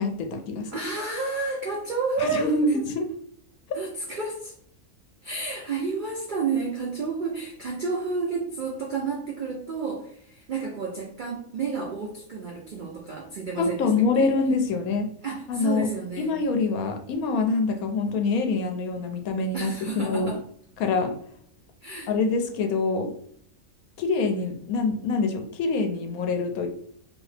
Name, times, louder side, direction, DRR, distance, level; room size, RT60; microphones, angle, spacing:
voice 1, 0.0-0.7 2.2-3.1 13.6-15.1 15.5-15.9 16.2-20.3 20.8-21.1 22.1-23.1 24.0-26.7, left 3 dB, 75° left, 5 dB, 1.0 m, -25 dB
voice 2, 0.7-2.9 3.7-4.5 5.2-13.9 14.1-14.3 15.2-16.3 19.5-20.4 21.8-22.1, right 4 dB, 70° right, -1 dB, 0.4 m, -31 dB
2.8 x 2.7 x 3.3 m, 0.64 s
omnidirectional pair, 1.6 m